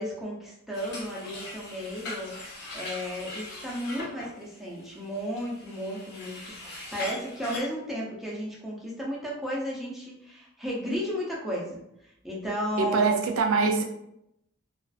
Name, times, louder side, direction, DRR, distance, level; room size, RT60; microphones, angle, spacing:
voice 1, 0.0-13.2, equal, ahead, -5 dB, 0.5 m, -34 dB
sound 1, 0.7-7.6, left 2 dB, 55° left, 0.7 m, -41 dB
voice 2, 12.8-13.8, right 4 dB, 75° right, 4 dB, 0.4 m, -24 dB
2.4 x 2.3 x 2.3 m, 0.79 s
head